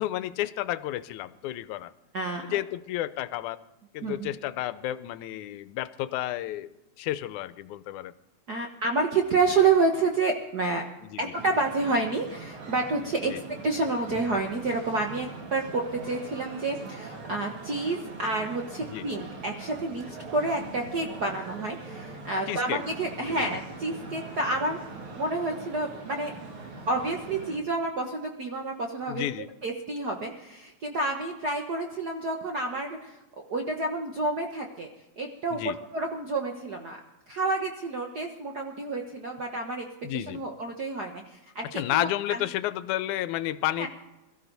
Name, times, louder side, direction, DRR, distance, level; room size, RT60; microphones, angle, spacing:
voice 1, 0.0-1.9 2.4-3.6 3.9-6.7 7.0-8.1 11.1-11.2 13.3-13.4 18.9-19.1 22.5-22.8 23.2-23.6 29.1-29.5 35.5-35.8 40.0-40.4 41.7-43.9, left 14 dB, 90° left, 15 dB, 2.1 m, -31 dB
voice 2, 2.1-2.6 4.0-4.3 8.5-10.8 11.2-13.3 13.6-24.8 25.1-26.3 26.9-29.2 29.6-34.9 35.2-37.0 37.3-39.9 40.1-42.4 43.8-43.9, right 3 dB, 60° right, 2 dB, 1.0 m, -29 dB
sound 1, 11.3-27.6, right 3 dB, 85° right, 4.0 m, -42 dB
22.0 x 13.5 x 4.0 m, 0.98 s
omnidirectional pair, 3.3 m